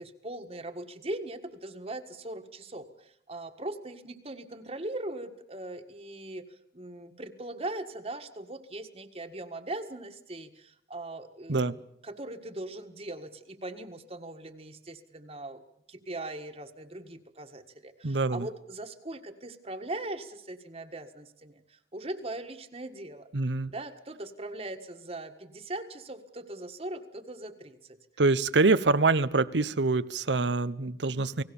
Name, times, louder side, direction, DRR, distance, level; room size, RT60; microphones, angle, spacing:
voice 1, 0.0-6.4 6.7-15.6 15.9-23.3 23.7-28.0, right 2 dB, 35° right, 4 dB, 1.7 m, -40 dB
voice 2, 18.0-18.5 23.3-23.7 28.2-31.4, right 3 dB, 85° right, 14 dB, 1.0 m, -25 dB
29.0 x 18.5 x 7.1 m, 0.73 s
head